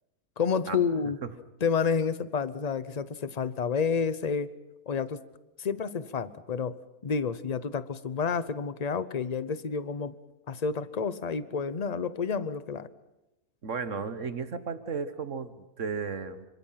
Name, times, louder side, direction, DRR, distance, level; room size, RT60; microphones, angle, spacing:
voice 1, 0.4-1.2 1.6-4.5 4.9-5.2 5.6-6.8 7.0-10.1 10.5-12.9, left 6 dB, 35° left, 15 dB, 0.7 m, -29 dB
voice 2, 13.6-16.5, right 5 dB, 55° right, 11 dB, 1.6 m, -34 dB
27.0 x 25.5 x 5.8 m, 1.0 s
omnidirectional pair, 1.6 m